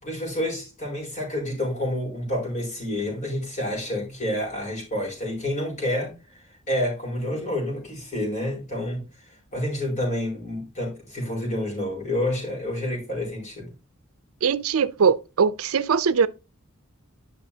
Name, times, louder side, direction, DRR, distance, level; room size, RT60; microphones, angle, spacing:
voice 1, 0.0-6.1 6.7-9.0 9.5-13.7, left 1 dB, 35° left, 4.7 m, -28 dB
voice 2, 14.4-16.3, right 6 dB, 85° right, 0.5 m, -21 dB
10.5 x 5.9 x 2.8 m
head